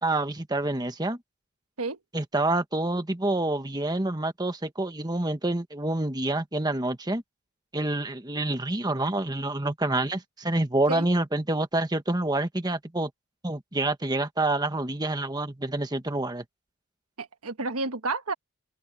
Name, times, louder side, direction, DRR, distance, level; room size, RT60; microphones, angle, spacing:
voice 1, 0.0-1.2 2.1-7.2 7.7-13.1 13.4-16.4, right 2 dB, 20° right, 1.4 m, -27 dB
voice 2, 17.2-18.3, right 3 dB, 90° right, 1.3 m, -30 dB
open air
head